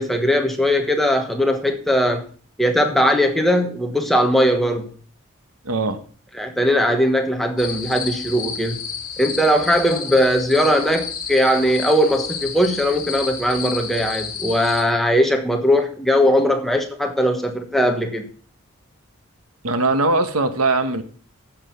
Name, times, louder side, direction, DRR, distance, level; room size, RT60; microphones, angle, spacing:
voice 1, 0.0-2.3 2.6-4.9 6.4-8.8 9.2-18.3, equal, ahead, 4 dB, 1.2 m, -19 dB
voice 2, 5.6-6.0 19.6-21.0, right 2 dB, 85° right, 10 dB, 1.4 m, -20 dB
sound 1, 7.6-14.8, left 6 dB, 40° left, 2.6 m, -31 dB
10.5 x 7.5 x 5.9 m, 0.43 s
head